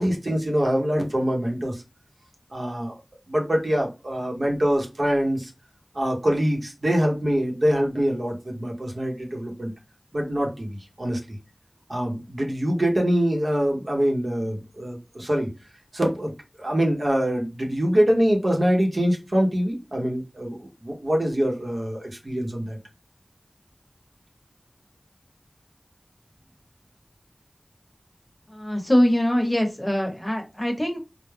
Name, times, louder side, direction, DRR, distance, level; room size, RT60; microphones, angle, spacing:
voice 1, 0.0-1.8 2.5-3.0 3.3-5.5 5.9-9.7 10.1-11.4 11.9-15.5 15.9-16.3 16.6-22.8, equal, 65° right, 0.8 m, -24 dB
voice 2, 28.5-31.0, equal, 25° left, 0.8 m, -23 dB
2.3 x 2.0 x 3.1 m
wide cardioid pair, 45°, 0 cm